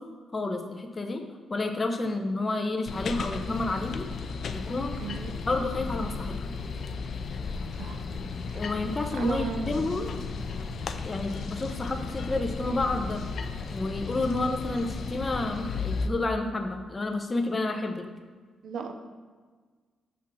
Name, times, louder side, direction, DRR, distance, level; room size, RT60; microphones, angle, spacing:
voice 1, 0.3-1.2 1.5-4.1 4.5-5.0 5.5-6.3 8.5-10.1 11.0-13.2 13.7-18.0, left 2 dB, 30° left, 4 dB, 0.7 m, -30 dB
sound 1, 2.9-16.1, left 4 dB, 60° left, 0.4 m, -34 dB
voice 2, 5.0-5.3 7.8-8.0 8.5-8.6 9.1-9.8 18.6-18.9, right 5 dB, 70° right, 6 dB, 0.6 m, -34 dB
sound 2, 8.4-15.1, left 2 dB, 85° left, 1.1 m, -47 dB
6.1 x 3.6 x 6.0 m, 1.5 s
cardioid pair, 85°, 0 cm